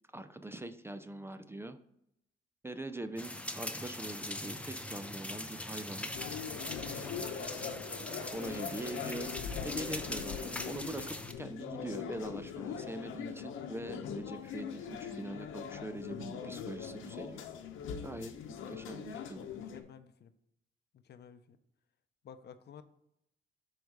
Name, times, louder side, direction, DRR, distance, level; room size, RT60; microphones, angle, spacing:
voice 1, 0.1-1.8 2.6-6.1 6.8-7.1 8.3-9.4 9.6-17.4 18.0-19.5, right 1 dB, 10° right, 10 dB, 0.4 m, -43 dB
sound 1, 3.2-11.3, left 1 dB, 5° left, 0.8 m, -41 dB
sound 2, 6.1-19.8, left 7 dB, 85° left, 0.8 m, -42 dB
voice 2, 19.5-20.3 20.9-21.6 22.2-22.8, left 7 dB, 55° left, 11 dB, 0.7 m, -53 dB
6.3 x 4.8 x 4.7 m, 0.78 s
cardioid pair, 90°, 20 cm